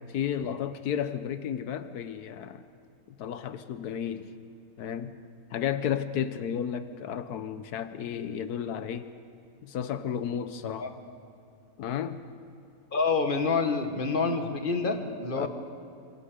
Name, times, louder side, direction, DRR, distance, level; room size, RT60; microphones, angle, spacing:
voice 1, 0.1-2.6 3.2-4.3 4.8-5.2 5.5-9.1 9.6-10.9 11.8-12.2 15.3-15.5, left 8 dB, 85° left, 11 dB, 1.4 m, -32 dB
voice 2, 12.9-15.5, left 4 dB, 35° left, 5 dB, 1.7 m, -27 dB
27.5 x 25.5 x 5.1 m, 2.6 s
omnidirectional pair, 1.6 m